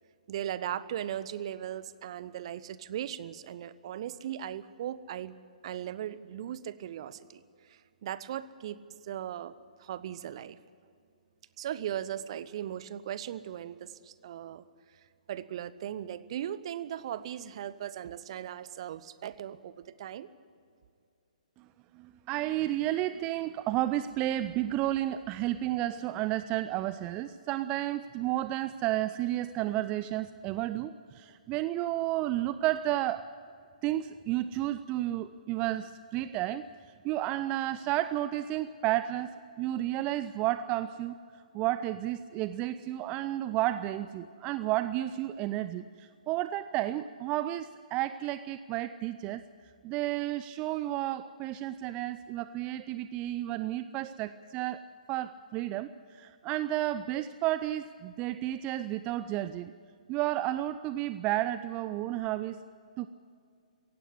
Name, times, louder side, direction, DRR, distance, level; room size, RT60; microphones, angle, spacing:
voice 1, 0.3-5.4 5.6-7.4 7.7-8.8 9.0-9.5 9.8-10.6 11.6-14.7 15.3-20.3, right 11 dB, 45° right, 16 dB, 0.8 m, -38 dB
voice 2, 22.0-33.3 33.8-36.6 37.0-41.1 41.5-49.4 49.8-54.8 55.1-59.7 60.1-62.6 63.0-63.1, right 14 dB, 25° right, 14 dB, 0.4 m, -32 dB
17.0 x 16.0 x 9.9 m, 2.3 s
figure-of-eight pair, 130°, 4 cm